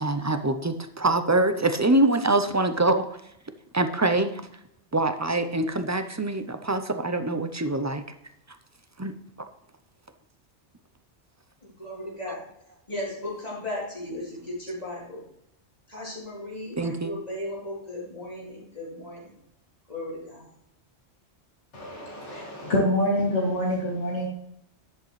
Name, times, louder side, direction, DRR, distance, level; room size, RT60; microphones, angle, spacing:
voice 1, 0.0-3.1 3.7-4.3 4.9-8.0 9.0-9.1 12.3-12.4 16.8-17.1, right 2 dB, 20° right, 8 dB, 0.4 m, -24 dB
voice 2, 11.8-12.4 12.9-15.2 15.9-19.4 19.9-20.5, left 1 dB, 35° left, -6 dB, 3.9 m, -36 dB
voice 3, 21.7-24.3, left 1 dB, 85° left, -3 dB, 2.8 m, -26 dB
11.0 x 7.6 x 3.2 m, 0.77 s
omnidirectional pair, 1.2 m